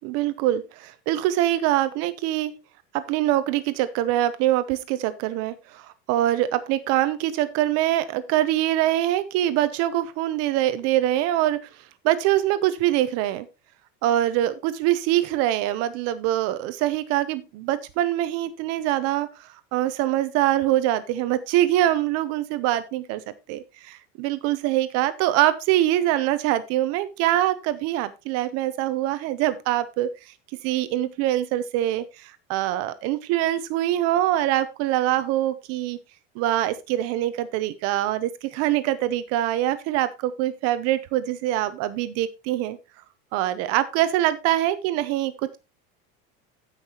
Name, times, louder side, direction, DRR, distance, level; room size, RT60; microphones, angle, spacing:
voice 1, 0.0-2.5 2.9-11.7 12.0-13.5 14.0-23.2 23.5-30.3 30.6-36.0 36.4-42.8 43.3-45.6, right 13 dB, 55° right, 13 dB, 0.8 m, -24 dB
15.5 x 5.7 x 2.9 m, 0.26 s
cardioid pair, 160°, 30 cm